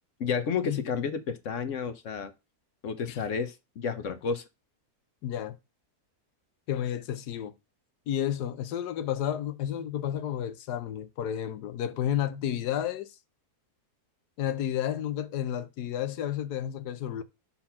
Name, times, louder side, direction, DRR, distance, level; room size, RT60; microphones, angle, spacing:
voice 1, 0.2-2.3 2.8-4.5, left 6 dB, 60° left, 1.0 m, -31 dB
voice 2, 5.2-5.5 6.7-7.5 8.1-13.1 14.4-17.2, left 10 dB, 80° left, 1.3 m, -31 dB
5.7 x 4.3 x 5.7 m
omnidirectional pair, 1.7 m